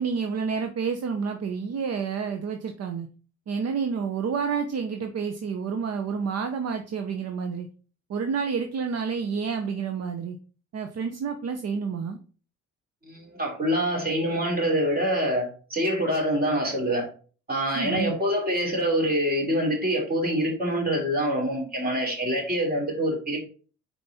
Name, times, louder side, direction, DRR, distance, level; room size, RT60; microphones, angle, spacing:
voice 1, 0.0-3.1 3.5-7.7 8.1-10.4 10.7-12.2 17.7-18.2, right 6 dB, 55° right, 6 dB, 0.8 m, -29 dB
voice 2, 13.0-17.1 17.5-23.4, equal, 30° right, 0 dB, 3.0 m, -25 dB
5.3 x 4.6 x 4.1 m, 0.40 s
cardioid pair, 90°, 30 cm